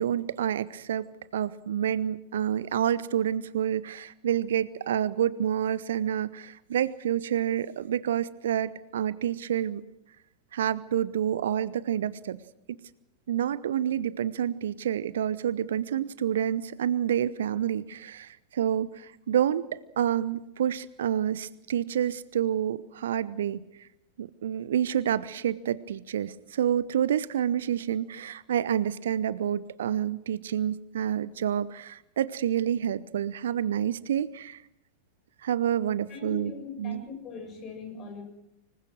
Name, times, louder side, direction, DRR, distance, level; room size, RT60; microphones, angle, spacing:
voice 1, 0.0-9.8 10.5-12.4 12.7-12.8 13.3-23.6 24.2-34.6 35.4-36.5 36.8-37.0, right 10 dB, 60° right, 19 dB, 0.8 m, -28 dB
voice 2, 36.1-38.2, left 3 dB, 30° left, 5 dB, 7.8 m, -40 dB
26.0 x 21.0 x 6.2 m, 0.85 s
figure-of-eight pair, 90°, 0 cm